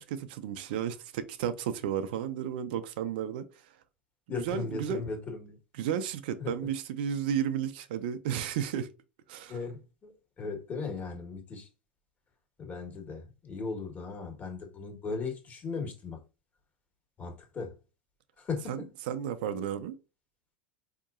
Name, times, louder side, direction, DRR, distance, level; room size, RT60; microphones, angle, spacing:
voice 1, 0.0-3.5 4.4-5.0 5.8-8.9 9.3-9.6 18.7-20.0, right 9 dB, 70° right, 0.5 m, -33 dB
voice 2, 4.3-5.5 6.4-6.5 9.5-11.7 12.6-16.2 17.2-17.7 18.4-18.9, left 4 dB, 30° left, 1.4 m, -37 dB
4.4 x 2.8 x 2.4 m
hypercardioid pair, 90°, 5 cm